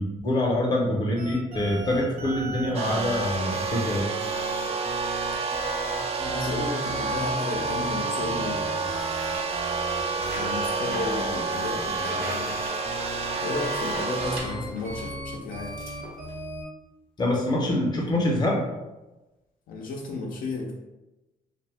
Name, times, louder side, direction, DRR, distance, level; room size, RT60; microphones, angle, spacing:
voice 1, 0.0-4.2 17.2-18.6, left 1 dB, 30° left, -2 dB, 0.7 m, -25 dB
sound 1, 1.2-16.6, right 1 dB, 65° right, 1.1 m, -37 dB
sound 2, 2.7-14.4, right 4 dB, 45° right, 0.4 m, -29 dB
voice 2, 6.2-9.0 10.3-12.6 13.4-15.8 19.7-20.7, left 3 dB, 70° left, -1 dB, 0.5 m, -33 dB
sound 3, 8.8-15.2 15.5-16.4, right 2 dB, 90° right, 0.8 m, -40 dB
2.6 x 2.2 x 3.3 m, 1.1 s
cardioid pair, 135°, 15 cm